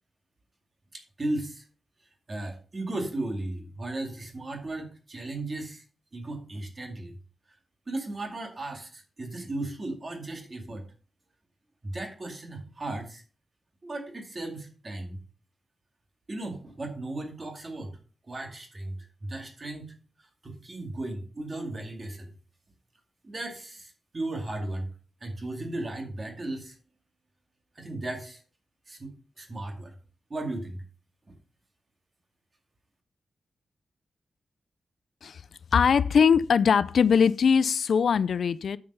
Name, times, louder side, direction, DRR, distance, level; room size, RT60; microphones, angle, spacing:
voice 1, 0.9-1.6 2.3-5.8 6.1-7.1 7.5-7.6 7.9-10.9 11.8-13.2 13.8-15.2 16.3-18.0 18.2-19.9 20.2-22.3 23.2-24.9 25.2-26.8 27.8-28.4 28.9-29.9 30.3-30.8, right 2 dB, 30° right, 2.2 m, -36 dB
voice 2, 35.7-38.8, left 6 dB, 65° left, 0.4 m, -21 dB
8.5 x 6.7 x 5.5 m
wide cardioid pair, 165°, 0 cm